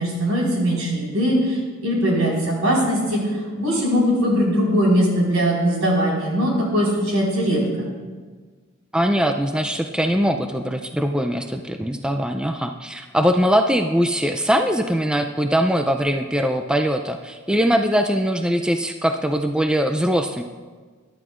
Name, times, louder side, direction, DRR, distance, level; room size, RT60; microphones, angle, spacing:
voice 1, 0.0-3.2 3.6-7.9, equal, 75° right, -3 dB, 4.5 m, -20 dB
voice 2, 8.9-20.4, equal, 5° right, 6 dB, 0.4 m, -21 dB
22.0 x 11.5 x 2.5 m, 1.5 s
head